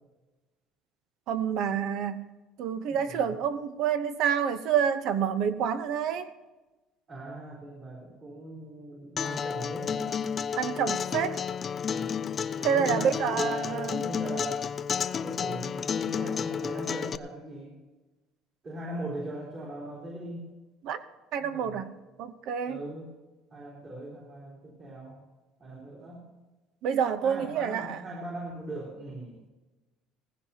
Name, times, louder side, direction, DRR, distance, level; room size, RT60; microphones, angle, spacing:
voice 1, 1.3-2.2 2.6-6.3 10.6-11.4 12.6-14.0 20.8-21.0 21.3-21.9 22.2-22.8 26.8-28.0, right 8 dB, 55° right, 0.9 m, -28 dB
voice 2, 2.9-3.4 7.1-10.2 11.8-12.1 12.5-14.7 15.1-17.8 18.6-20.5 21.4-21.9 22.7-23.1 23.5-25.2 25.6-26.2 27.2-29.4, right 1 dB, 35° right, 3.9 m, -40 dB
Acoustic guitar, 9.2-17.2, left 7 dB, 30° left, 0.4 m, -31 dB
19.0 x 15.5 x 2.9 m
cardioid pair, 155°, 0 cm